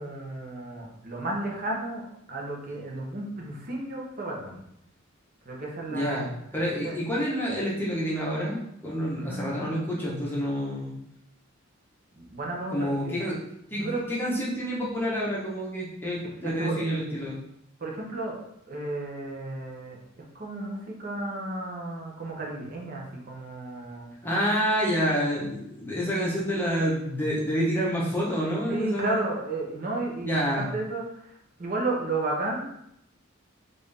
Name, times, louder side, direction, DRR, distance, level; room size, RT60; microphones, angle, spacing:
voice 1, 0.0-4.6 5.4-6.2 6.5-7.0 9.3-10.0 12.1-13.3 13.7-14.1 16.4-16.8 17.8-18.4 18.7-24.1 28.7-32.6, right 2 dB, 40° right, -2 dB, 0.9 m, -33 dB
voice 2, 5.9-11.0 12.7-13.4 13.7-17.4 24.2-29.2 30.2-30.7, equal, 10° left, -6 dB, 0.9 m, -28 dB
3.7 x 2.6 x 3.3 m, 0.77 s
head